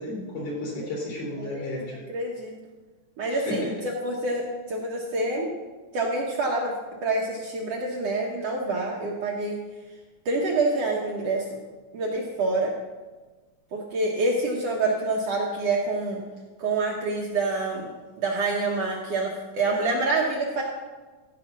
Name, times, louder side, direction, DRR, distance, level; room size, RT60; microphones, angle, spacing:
voice 1, 0.0-2.0 3.3-3.7, left 2 dB, 50° left, -4 dB, 4.3 m, -32 dB
voice 2, 1.4-2.5 3.2-3.7 4.0-5.5 5.9-6.7 7.0-9.6 10.3-11.4 11.9-12.7 13.7-16.2 16.6-17.9 18.2-20.6, right 2 dB, 60° right, -1 dB, 1.9 m, -27 dB
14.5 x 5.6 x 6.1 m, 1.3 s
omnidirectional pair, 3.7 m